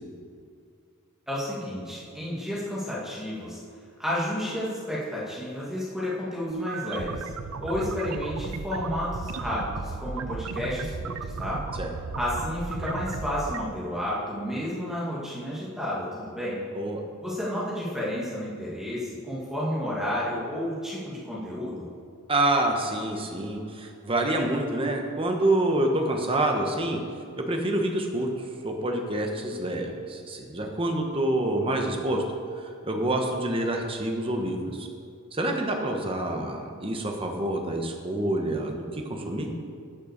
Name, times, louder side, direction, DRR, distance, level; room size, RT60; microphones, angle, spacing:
voice 1, 1.3-3.6 4.0-7.3 7.6-11.7 12.2-16.6 17.2-21.9, left 1 dB, ahead, -8 dB, 2.0 m, -31 dB
sound 1, 6.5-13.6, right 4 dB, 75° right, 0.5 m, -35 dB
voice 2, 22.3-27.0 27.4-28.3 28.6-32.2 32.8-34.9 35.3-39.5, right 1 dB, 25° right, 2 dB, 1.1 m, -27 dB
10.5 x 6.5 x 6.7 m, 2.3 s
head